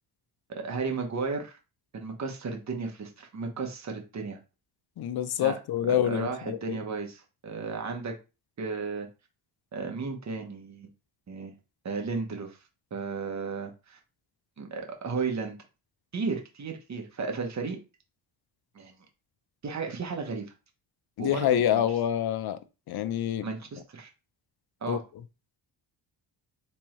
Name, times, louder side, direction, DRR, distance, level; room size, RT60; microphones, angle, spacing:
voice 1, 0.5-1.6 1.9-4.4 5.4-5.6 5.9-8.2 8.6-9.1 9.7-10.9 11.3-11.5 11.8-12.6 12.9-14.0 14.6-15.6 16.1-17.8 18.7-18.9 19.6-20.5 21.2-21.8 23.4-24.1 24.8-25.0, right 4 dB, 35° right, 0.9 m, -34 dB
voice 2, 5.0-6.8 21.2-22.6 22.9-23.5 24.9-25.0, left 10 dB, 55° left, 0.5 m, -27 dB
3.5 x 3.1 x 3.0 m
cardioid pair, 110°, 47 cm